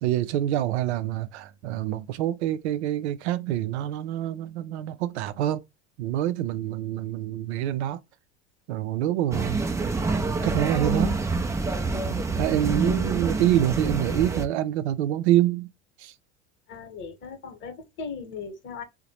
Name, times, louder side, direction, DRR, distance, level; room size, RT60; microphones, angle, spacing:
voice 1, 0.0-5.6 6.0-8.0 8.7-9.6 10.4-11.1 12.4-15.7 16.0-16.1, right 12 dB, 80° right, 0.5 m, -26 dB
sound 1, 9.3-14.5, right 3 dB, 10° right, 0.4 m, -27 dB
voice 2, 11.9-12.5 16.7-18.8, left 5 dB, 35° left, 1.0 m, -39 dB
3.8 x 2.2 x 2.8 m
hypercardioid pair, 85°, 33 cm